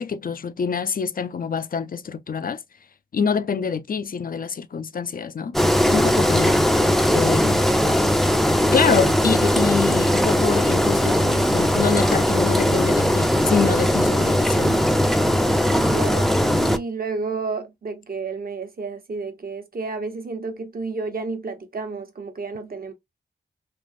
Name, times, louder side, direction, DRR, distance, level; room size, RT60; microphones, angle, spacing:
voice 1, 0.0-2.6 3.1-5.5 5.9-6.6 7.1-7.6 8.7-14.9, left 6 dB, 50° left, 0.5 m, -26 dB
Engine, 5.5-16.8, equal, ahead, 0.5 m, -19 dB
voice 2, 15.7-22.9, right 4 dB, 55° right, 1.0 m, -31 dB
3.4 x 2.5 x 2.5 m
cardioid pair, 45°, 18 cm